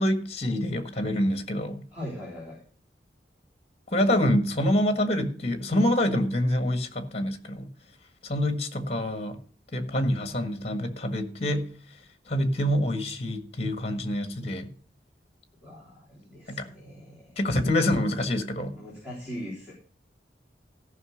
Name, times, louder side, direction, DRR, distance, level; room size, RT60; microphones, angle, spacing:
voice 1, 0.0-1.8 3.9-7.7 8.2-9.4 9.7-11.7 12.3-14.7 16.5-16.7 17.4-18.7, left 1 dB, 35° left, 1.6 m, -26 dB
voice 2, 1.9-2.6 15.6-17.4 18.7-19.7, equal, 5° right, 3.7 m, -40 dB
14.0 x 5.8 x 6.4 m
head